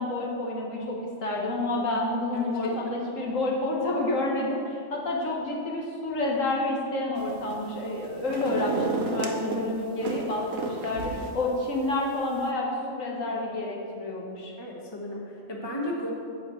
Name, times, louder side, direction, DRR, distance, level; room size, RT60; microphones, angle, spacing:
voice 1, 0.0-14.5, left 2 dB, 80° left, -2 dB, 1.8 m, -29 dB
voice 2, 2.3-2.9 14.6-16.1, equal, 20° left, -1 dB, 1.2 m, -35 dB
sound 1, 7.2-7.7 8.0-9.6 10.0-11.4 11.8-11.9, right 3 dB, 90° right, 1.3 m, -31 dB
8.6 x 5.1 x 7.7 m, 2.5 s
omnidirectional pair, 1.3 m